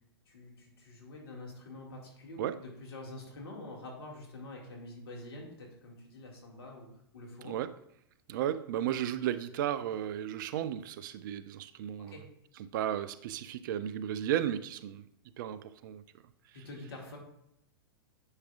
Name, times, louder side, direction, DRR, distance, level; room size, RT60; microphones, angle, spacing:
voice 1, 0.3-6.9 7.1-7.5 12.1-12.3 16.5-17.2, left 2 dB, 70° left, 2.0 m, -46 dB
voice 2, 8.3-12.2 12.6-15.1 15.4-16.0 16.5-16.6, right 10 dB, 50° right, 0.4 m, -34 dB
9.5 x 4.8 x 2.4 m
figure-of-eight pair, 105°, 13 cm